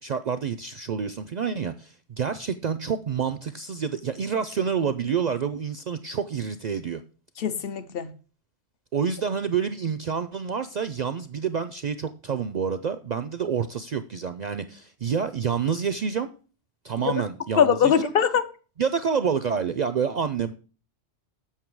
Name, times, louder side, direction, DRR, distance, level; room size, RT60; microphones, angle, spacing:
voice 1, 0.0-7.0 8.9-16.3 16.8-18.1 18.8-20.5, right 6 dB, 60° right, 0.4 m, -28 dB
voice 2, 7.4-8.1 17.0-17.2 17.6-18.5, left 8 dB, 60° left, 0.9 m, -22 dB
7.4 x 6.6 x 4.6 m
omnidirectional pair, 1.1 m